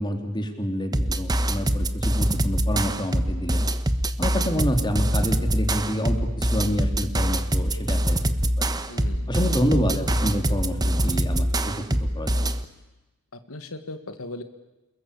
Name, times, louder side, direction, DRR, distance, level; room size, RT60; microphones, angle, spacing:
voice 1, 0.0-3.6 4.2-8.2 8.6-8.7 9.3-12.5, equal, 20° left, 5 dB, 3.7 m, -28 dB
sound 1, 0.9-12.6, right 1 dB, 20° right, 1.2 m, -24 dB
voice 2, 8.9-9.3 13.5-14.4, left 2 dB, 85° left, 9 dB, 1.9 m, -37 dB
29.0 x 21.5 x 8.6 m, 1.1 s
head